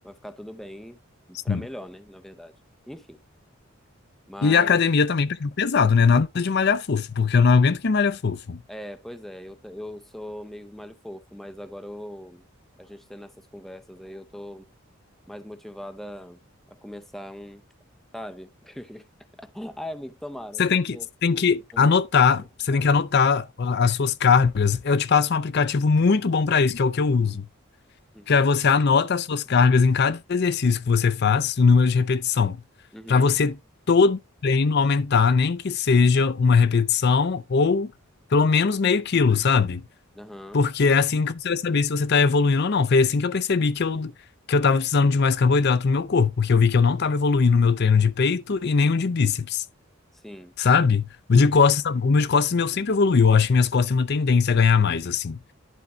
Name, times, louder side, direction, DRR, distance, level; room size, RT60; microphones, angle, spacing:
voice 1, 0.0-1.0 1.3-2.5 2.9-3.2 4.3-4.8 8.7-12.4 12.8-14.7 15.3-16.4 16.8-17.6 18.1-19.1 19.4-21.1 21.7-21.9 22.7-22.9 28.1-28.3 32.9-33.3 40.1-40.6 50.1-50.5 51.3-51.5, equal, ahead, 0.6 m, -40 dB
voice 2, 4.4-8.6 20.6-27.5 28.3-32.6 33.1-33.6 33.9-37.9 38.3-39.8 40.5-44.1 44.5-49.6 50.6-51.0 51.3-55.4, left 5 dB, 55° left, 0.5 m, -20 dB
11.0 x 4.6 x 3.8 m
head